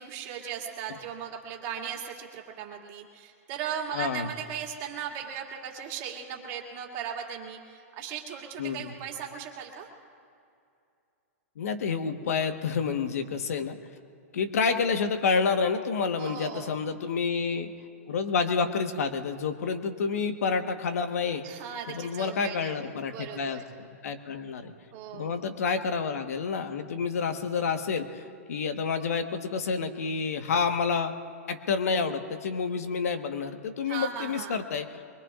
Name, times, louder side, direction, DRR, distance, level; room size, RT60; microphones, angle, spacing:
voice 1, 0.0-9.9 16.2-16.8 21.4-23.6 24.9-25.5 33.8-34.6, right 8 dB, 35° right, 0 dB, 2.5 m, -38 dB
voice 2, 3.9-4.3 8.6-8.9 11.6-13.8 14.3-17.7 18.1-21.5 21.9-24.7 25.1-28.2 28.5-31.1 31.5-34.9, left 5 dB, 75° left, 7 dB, 1.3 m, -29 dB
24.0 x 23.0 x 2.5 m, 2.5 s
hypercardioid pair, 145°, 8 cm